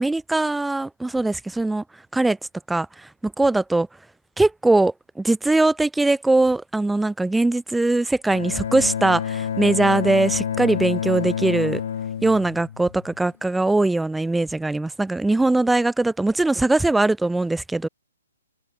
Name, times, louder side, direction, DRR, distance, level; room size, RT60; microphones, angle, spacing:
voice 1, 0.0-1.8 2.1-2.4 2.7-3.9 4.4-11.8 12.2-17.9, right 2 dB, 5° right, 1.2 m, -21 dB
Bowed string instrument, 8.3-13.3, left 8 dB, 60° left, 2.2 m, -28 dB
hypercardioid pair, 135°, 0 cm